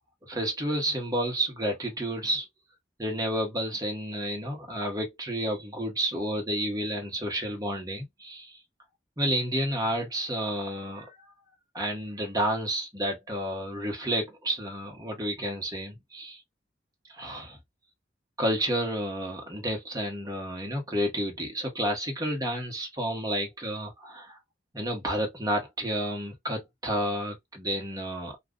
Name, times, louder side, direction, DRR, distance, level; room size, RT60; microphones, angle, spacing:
voice 1, 0.3-2.4 3.0-8.6 9.2-11.2 11.7-16.4 17.1-17.6 18.4-24.4 24.7-28.4, equal, 20° right, 1.1 m, -30 dB
2.5 x 2.4 x 3.6 m
head